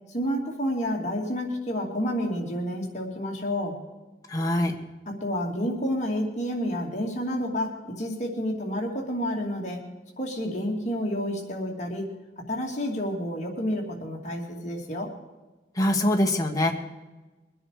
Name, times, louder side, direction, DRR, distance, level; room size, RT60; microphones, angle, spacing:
voice 1, 0.1-3.8 5.1-9.8 10.2-12.1 12.5-15.1, equal, 40° left, 0 dB, 2.6 m, -29 dB
voice 2, 4.3-4.8 15.7-16.7, left 1 dB, 20° left, 1 dB, 1.5 m, -23 dB
23.0 x 10.0 x 4.9 m, 1.2 s
head